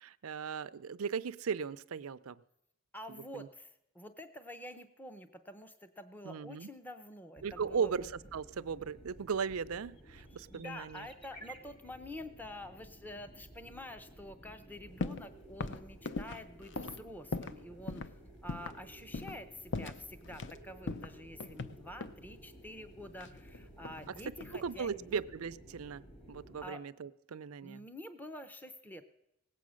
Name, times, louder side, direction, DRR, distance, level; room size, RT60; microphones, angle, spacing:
voice 1, 0.0-2.4 3.3-3.5 6.2-6.7 7.4-11.1 24.5-27.8, right 6 dB, 75° right, 15 dB, 0.5 m, -37 dB
voice 2, 2.9-8.1 10.5-25.2 26.6-26.8 27.6-29.0, left 1 dB, 10° left, 8 dB, 0.6 m, -48 dB
sound 1, 7.4-26.7, right 1 dB, 25° left, 1.6 m, -55 dB
sound 2, 15.0-15.3 15.6-17.6 17.9-18.1 18.5-18.8 19.1-19.4 19.7-20.6 20.9-22.2 23.2-24.1 24.4-24.8, left 3 dB, 55° left, 0.6 m, -40 dB
18.5 x 8.4 x 6.3 m, 0.87 s
head